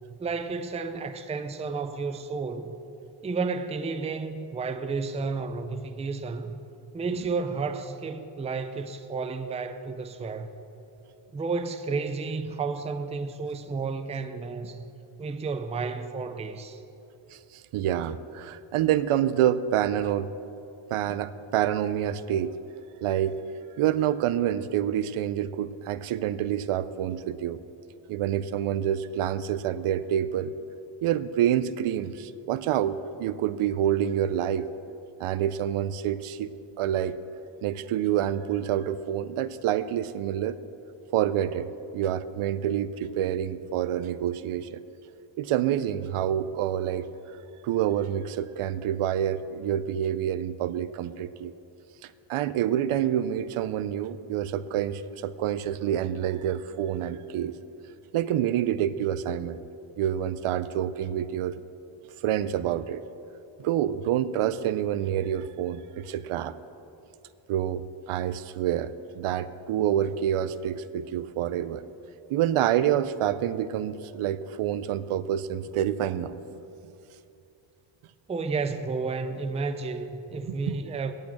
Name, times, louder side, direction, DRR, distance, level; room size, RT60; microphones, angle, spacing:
voice 1, 0.2-2.7 3.2-6.5 6.9-10.5 11.3-14.8 15.2-16.8 78.3-81.1, right 4 dB, 15° right, 0.4 m, -32 dB
voice 2, 17.3-20.3 20.9-22.6 23.0-23.4 23.8-27.6 28.1-30.5 31.0-34.7 35.2-36.5 36.8-37.2 37.6-40.6 41.1-44.8 45.4-47.1 47.6-51.5 52.0-57.6 58.1-59.6 60.0-61.6 62.2-63.0 63.6-66.6 67.5-71.8 72.3-76.6 80.7-80.8, right 10 dB, 80° right, 0.6 m, -27 dB
8.9 x 8.4 x 8.5 m
wide cardioid pair, 155°, 50 cm